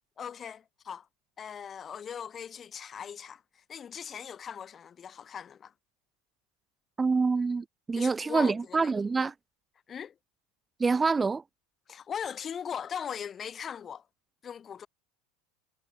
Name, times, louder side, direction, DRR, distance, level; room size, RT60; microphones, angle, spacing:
voice 1, 0.2-1.1 1.4-5.7 7.9-8.9 9.9-10.1 11.9-14.0 14.4-14.9, left 8 dB, 30° left, 7.0 m, -39 dB
voice 2, 7.0-9.3 10.8-11.4, right 4 dB, 15° right, 4.9 m, -26 dB
supercardioid pair, 120°, 0 cm